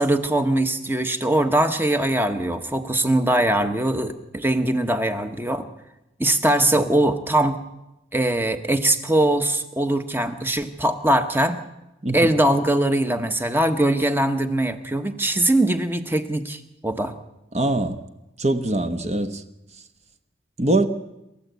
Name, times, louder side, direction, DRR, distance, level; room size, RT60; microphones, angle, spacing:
voice 1, 0.0-5.7 6.2-7.6 8.1-11.6 12.1-17.1, right 1 dB, 10° right, 8 dB, 1.1 m, -21 dB
voice 2, 17.5-18.0 18.4-19.4 20.6-20.9, right 2 dB, 35° right, 9 dB, 1.0 m, -22 dB
28.0 x 13.5 x 8.2 m, 0.94 s
head